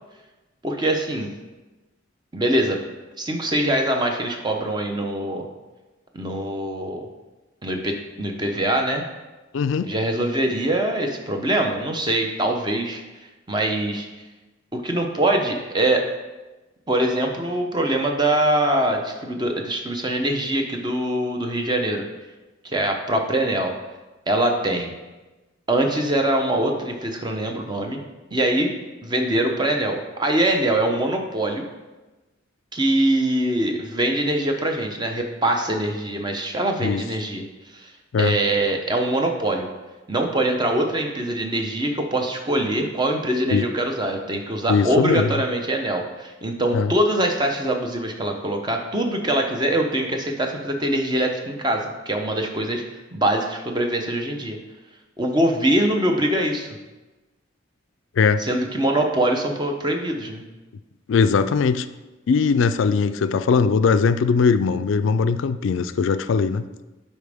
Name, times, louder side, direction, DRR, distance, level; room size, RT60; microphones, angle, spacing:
voice 1, 0.6-1.3 2.3-2.8 3.2-5.5 6.1-7.1 7.6-9.0 9.8-13.0 13.5-14.1 14.7-16.1 16.9-22.0 22.6-23.7 24.3-24.9 25.7-28.0 28.3-28.7 29.0-31.6 32.7-37.4 37.7-37.9 38.2-39.7 40.1-52.8 53.1-54.6 55.2-56.7 58.4-60.4, right 1 dB, 20° right, 3 dB, 0.7 m, -23 dB
voice 2, 9.5-9.9 36.8-37.0 38.1-38.4 43.5-43.7 44.7-45.3 46.7-46.9 58.2-58.5 61.1-61.9 62.3-66.6, left 5 dB, 70° left, 12 dB, 0.3 m, -20 dB
10.0 x 4.1 x 3.5 m, 1.1 s
head